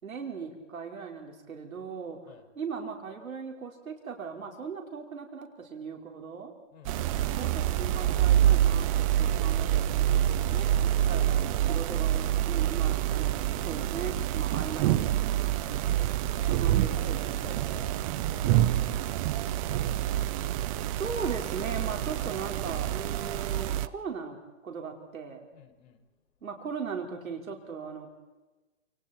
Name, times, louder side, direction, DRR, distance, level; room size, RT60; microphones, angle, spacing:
voice 1, 0.0-2.2 2.6-6.5 7.3-15.4 16.6-17.6 20.9-24.4 24.6-25.5 26.4-28.1, right 5 dB, 85° right, 2 dB, 5.3 m, -38 dB
voice 2, 6.7-7.4 10.9-11.4 15.6-16.6 16.9-17.9 18.3-20.5 25.5-26.1, left 9 dB, 55° left, 3 dB, 6.2 m, -54 dB
sound 1, 6.8-23.9, right 12 dB, 25° right, 0.7 m, -27 dB
29.5 x 28.5 x 4.6 m, 1.2 s
hypercardioid pair, 140°, 40 cm